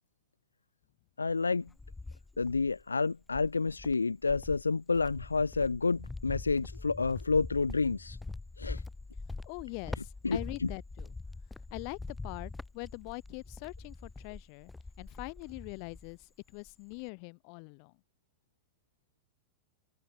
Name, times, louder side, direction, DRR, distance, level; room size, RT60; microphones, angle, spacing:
voice 1, 1.2-1.7 2.4-8.2 8.6-8.8 10.2-10.7, left 4 dB, 80° left, 1.0 m, -29 dB
Cricket, 1.3-2.8 3.3-16.2 16.5-17.1, left 3 dB, 10° left, 2.6 m, -44 dB
voice 2, 9.5-11.1 11.7-14.7 15.0-17.9, left 40 dB or more, 45° left, 2.6 m, -43 dB
figure-of-eight pair, 90°, 0 cm